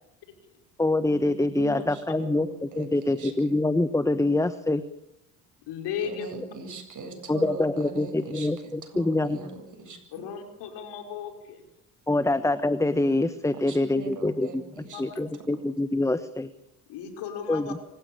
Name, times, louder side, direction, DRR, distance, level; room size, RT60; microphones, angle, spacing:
voice 1, 0.8-4.8 7.3-9.4 12.1-14.6 15.0-16.5 17.5-17.8, left 2 dB, 5° left, 13 dB, 1.2 m, -25 dB
voice 2, 1.5-3.3 6.0-8.5 8.8-10.2 13.5-15.0, right 3 dB, 45° right, 5 dB, 7.9 m, -41 dB
voice 3, 5.6-6.3 10.1-11.7 14.9-15.2 16.9-17.7, left 8 dB, 65° left, 5 dB, 5.4 m, -35 dB
25.5 x 16.0 x 8.8 m, 0.84 s
hypercardioid pair, 65°, 44 cm